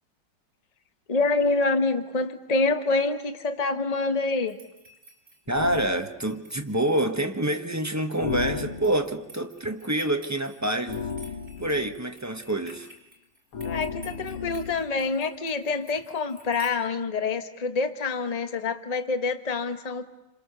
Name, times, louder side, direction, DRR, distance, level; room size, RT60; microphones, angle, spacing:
voice 1, 1.1-4.6 13.6-20.0, left 3 dB, 20° left, 8 dB, 1.2 m, -26 dB
sound 1, 4.5-16.7, equal, 30° right, 5.0 m, -53 dB
sound 2, 5.5-6.0 8.2-9.1 10.9-12.0 13.5-14.9, left 5 dB, 90° left, 2.5 m, -33 dB
voice 2, 5.5-11.0 11.6-12.9, right 1 dB, 10° right, 5 dB, 1.0 m, -27 dB
28.5 x 26.5 x 6.9 m, 0.93 s
omnidirectional pair, 2.2 m